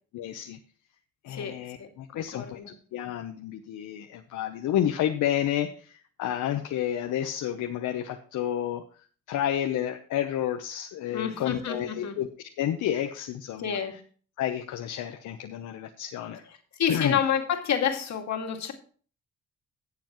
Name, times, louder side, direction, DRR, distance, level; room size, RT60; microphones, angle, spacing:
voice 1, 0.1-0.6 1.2-8.8 9.3-12.3 12.6-14.0 14.4-16.4 16.9-17.2, left 11 dB, 80° left, 5 dB, 0.9 m, -30 dB
voice 2, 1.3-1.9 2.1-2.7 11.1-12.2 13.6-13.9 16.8-18.7, left 8 dB, 65° left, 3 dB, 2.3 m, -29 dB
16.5 x 7.0 x 3.1 m, 0.42 s
cardioid pair, 90°, 30 cm